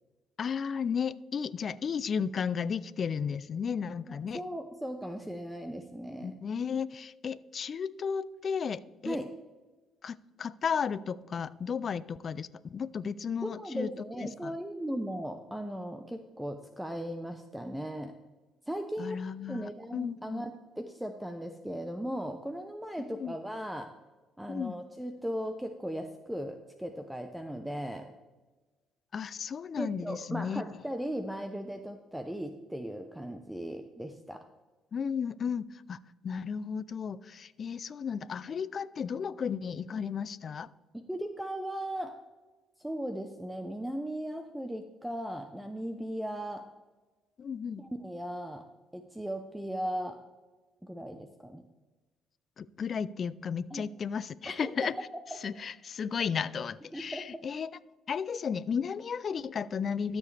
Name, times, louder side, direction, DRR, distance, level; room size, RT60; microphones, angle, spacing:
voice 1, 0.4-4.4 6.2-9.2 10.0-13.9 14.2-14.6 19.0-20.4 23.1-23.4 24.5-24.7 29.1-30.6 34.9-36.0 36.2-40.7 47.4-47.8 52.6-54.9 55.4-57.7 58.1-60.2, left 6 dB, 45° left, 17 dB, 0.3 m, -34 dB
voice 2, 4.1-6.4 9.0-9.3 13.4-18.1 18.7-19.2 19.5-23.9 24.4-28.1 29.8-34.4 40.9-42.2 42.8-46.7 47.8-48.7 48.9-50.2 50.8-51.6 53.7-53.8 54.5-54.7 55.1-55.2 56.2-56.3 56.9-57.4, equal, 5° right, 6 dB, 0.6 m, -37 dB
13.0 x 7.1 x 3.3 m, 1.2 s
cardioid pair, 95°, 0 cm